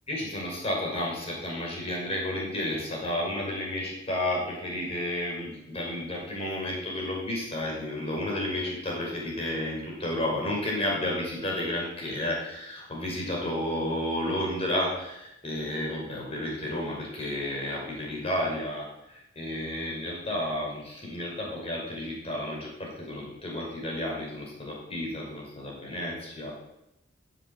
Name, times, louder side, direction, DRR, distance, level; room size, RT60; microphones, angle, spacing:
voice 1, 0.1-26.5, left 1 dB, 30° left, -2 dB, 5.9 m, -32 dB
15.0 x 7.9 x 8.1 m, 0.88 s
head